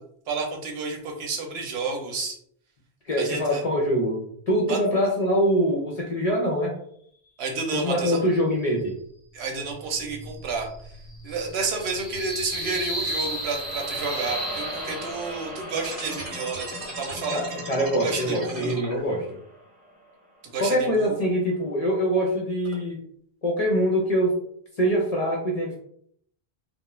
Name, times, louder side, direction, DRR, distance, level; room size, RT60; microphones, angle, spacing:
voice 1, 0.3-2.4 3.2-3.6 4.7-4.8 7.4-8.2 9.3-11.0 11.2-17.6 18.0-18.8 20.4-21.2, right 4 dB, 80° right, 2 dB, 0.9 m, -31 dB
voice 2, 3.1-6.7 7.7-8.9 17.3-19.2 20.6-23.0 23.4-24.3 24.8-25.8, equal, 45° left, -1 dB, 0.5 m, -24 dB
sound 1, 9.5-15.5, right 1 dB, 10° left, 1.1 m, -34 dB
sound 2, 12.3-20.7, right 1 dB, 15° right, 0.3 m, -40 dB
sound 3, 15.7-19.3, right 1 dB, 40° right, 0.7 m, -37 dB
2.3 x 2.0 x 3.0 m, 0.66 s
omnidirectional pair, 1.1 m